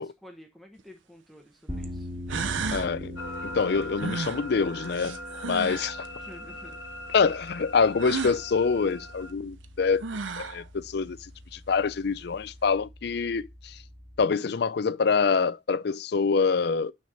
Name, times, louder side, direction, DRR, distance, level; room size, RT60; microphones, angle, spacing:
voice 1, 0.0-2.6 6.2-6.8, equal, ahead, 1.0 m, -50 dB
sound 1, 0.8-0.9 1.8-1.9 2.3-2.9 4.0-5.9 8.0-8.4 9.6-9.7 10.0-10.6, right 4 dB, 85° right, 0.7 m, -33 dB
sound 2, 1.7-14.2, left 1 dB, 25° right, 2.5 m, -43 dB
voice 2, 2.7-3.2 3.4-5.2 5.4-6.0 7.1-10.0 10.4-11.2 11.7-13.7 14.2-16.9, left 5 dB, 60° left, 0.4 m, -25 dB
sound 3, 3.2-9.3, left 1 dB, 80° left, 0.9 m, -40 dB
6.5 x 6.3 x 4.2 m
head